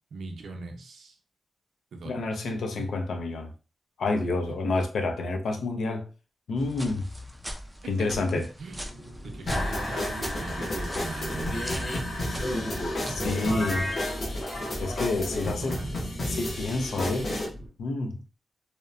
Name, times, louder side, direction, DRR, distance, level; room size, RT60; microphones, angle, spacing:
voice 1, 0.1-1.2 1.9-2.5 7.8-8.9 9.2-13.4 15.4-16.0 16.9-17.2, right 3 dB, 80° right, 0.5 m, -40 dB
voice 2, 2.1-3.5 4.0-6.1 6.5-7.1 7.9-8.5 13.1-13.9 14.8-15.8 16.2-17.3 17.8-18.2, left 3 dB, 85° left, 0.5 m, -28 dB
sound 1, 6.6-13.1, equal, 5° right, 0.3 m, -42 dB
sound 2, 8.7-17.7, equal, 15° left, 0.9 m, -42 dB
sound 3, 9.5-17.5, left 1 dB, 50° left, 0.8 m, -31 dB
2.8 x 2.0 x 2.4 m
wide cardioid pair, 160°, 0 cm